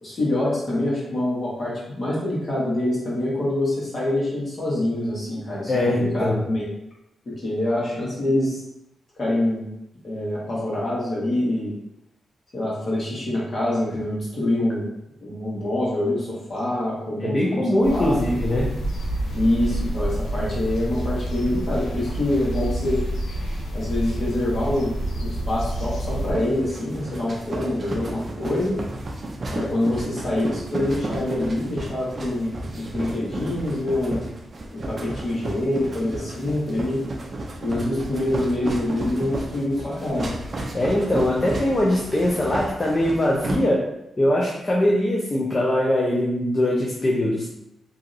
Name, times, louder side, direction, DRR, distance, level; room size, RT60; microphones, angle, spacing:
voice 1, 0.0-5.7 6.0-6.7 7.2-8.6 9.2-9.6 10.0-11.8 12.5-14.9 15.2-17.6 17.9-18.4 19.3-23.0 23.7-28.8 29.5-34.2 34.7-37.0 37.6-40.3, left 1 dB, 40° left, -7 dB, 1.3 m, -25 dB
voice 2, 5.7-6.5 17.2-18.8 40.7-47.5, left 1 dB, 25° left, -4 dB, 0.5 m, -22 dB
sound 1, 17.8-26.3, right 1 dB, 80° left, 0.7 m, -28 dB
sound 2, 26.1-43.5, right 1 dB, 35° right, 0.4 m, -33 dB
2.8 x 2.6 x 2.6 m, 0.85 s
cardioid pair, 115°, 0 cm